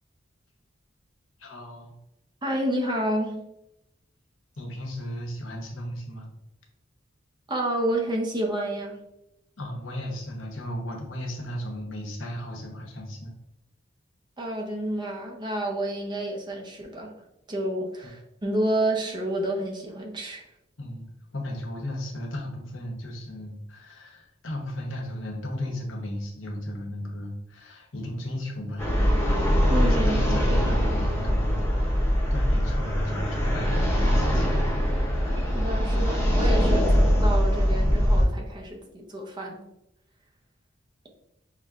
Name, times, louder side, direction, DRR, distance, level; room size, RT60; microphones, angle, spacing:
voice 1, 1.4-1.9 4.6-6.3 9.6-13.3 20.8-21.1 21.3-28.9 29.7-32.0 32.3-34.6 35.0-35.6, left 1 dB, 70° left, -1 dB, 0.9 m, -35 dB
voice 2, 2.4-3.4 7.5-9.0 14.4-17.1 17.5-20.5 29.7-30.4 35.4-39.7, right 1 dB, 25° right, 1 dB, 0.5 m, -29 dB
sound 1, 28.8-38.3, equal, 15° left, 0.9 m, -22 dB
5.6 x 2.1 x 2.4 m, 0.84 s
head